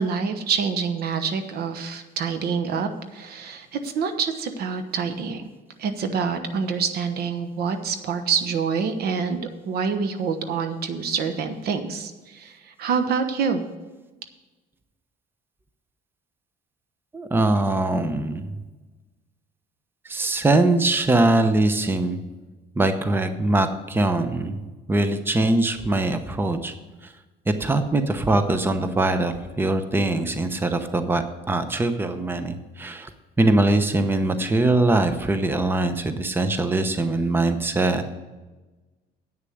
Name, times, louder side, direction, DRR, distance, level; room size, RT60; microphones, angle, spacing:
voice 1, 0.0-5.4 5.8-13.6, right 5 dB, 70° right, 9 dB, 1.1 m, -26 dB
voice 2, 17.1-18.6 20.0-22.2 22.8-24.6 24.9-26.7 27.0-27.1 27.6-33.1 33.4-38.1, right 2 dB, 10° right, 9 dB, 0.8 m, -22 dB
9.1 x 6.6 x 7.8 m, 1.2 s
cardioid pair, 110°, 17 cm